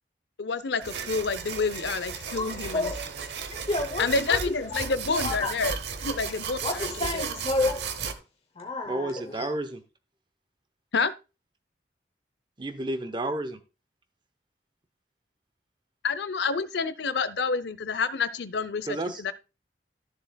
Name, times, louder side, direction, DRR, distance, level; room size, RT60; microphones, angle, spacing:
voice 1, 0.4-2.9 4.0-7.3 10.9-11.1 16.0-19.3, left 4 dB, 70° left, 0.6 m, -29 dB
sound 1, 0.8-8.1, right 6 dB, 70° right, 0.9 m, -35 dB
voice 2, 3.5-4.6 5.1-5.5 6.6-8.2 8.6-9.4, left 2 dB, 35° left, 0.8 m, -30 dB
voice 3, 8.8-9.8 12.6-13.6 18.9-19.2, right 1 dB, 25° right, 0.8 m, -31 dB
13.5 x 6.9 x 2.3 m
head